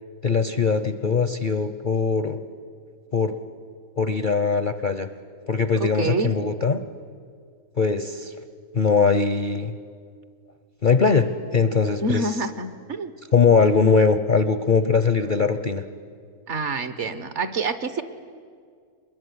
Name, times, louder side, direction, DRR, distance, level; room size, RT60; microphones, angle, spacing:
voice 1, 0.2-2.4 3.1-3.3 4.0-5.1 5.5-6.8 7.8-8.3 8.7-9.7 10.8-11.3 11.5-12.4 13.3-15.8, left 5 dB, 40° left, 10 dB, 0.7 m, -21 dB
voice 2, 5.7-6.3 12.0-13.1 16.5-18.0, right 3 dB, 50° right, 11 dB, 1.3 m, -27 dB
24.0 x 21.5 x 9.7 m, 2.1 s
omnidirectional pair, 1.7 m